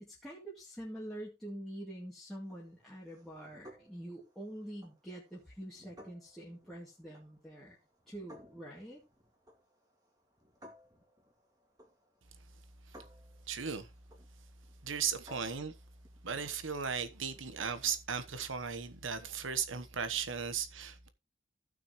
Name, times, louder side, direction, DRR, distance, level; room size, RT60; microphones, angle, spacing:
voice 1, 0.0-7.8 8.1-9.0, right 1 dB, ahead, 2.2 m, -46 dB
sound 1, 2.4-18.0, equal, 20° right, 2.1 m, -60 dB
voice 2, 13.5-13.9 14.8-15.7 16.2-21.1, right 6 dB, 90° right, 1.1 m, -36 dB
15.0 x 6.1 x 3.1 m
head